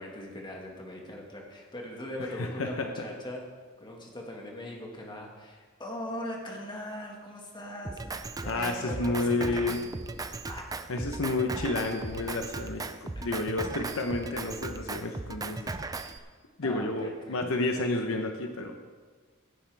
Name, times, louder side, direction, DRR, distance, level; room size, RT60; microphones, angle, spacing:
voice 1, 0.0-3.4 3.8-9.8 10.5-10.6 13.2-13.4 16.6-17.4, left 1 dB, 20° left, 0 dB, 1.9 m, -40 dB
voice 2, 2.4-2.9 8.5-9.8 10.9-16.2 16.6-18.9, left 2 dB, 65° left, 4 dB, 0.9 m, -31 dB
Drum kit, 7.8-16.2, right 3 dB, 15° right, 0.4 m, -37 dB
16.5 x 10.0 x 3.5 m, 1.5 s
head